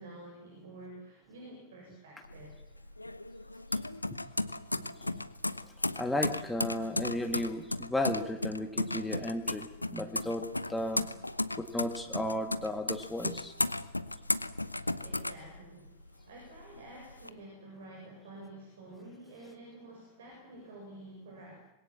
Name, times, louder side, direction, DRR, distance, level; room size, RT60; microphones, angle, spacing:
voice 1, 0.0-2.5 15.0-16.0 16.3-21.6, right 1 dB, 60° right, 1 dB, 7.0 m, -49 dB
sound 1, 2.2-16.1 16.5-17.3, left 2 dB, 85° left, 0.9 m, -35 dB
voice 2, 6.0-11.1 11.6-13.5, left 1 dB, 5° left, 4 dB, 2.1 m, -34 dB
26.0 x 21.5 x 7.5 m, 0.84 s
figure-of-eight pair, 90°, 0 cm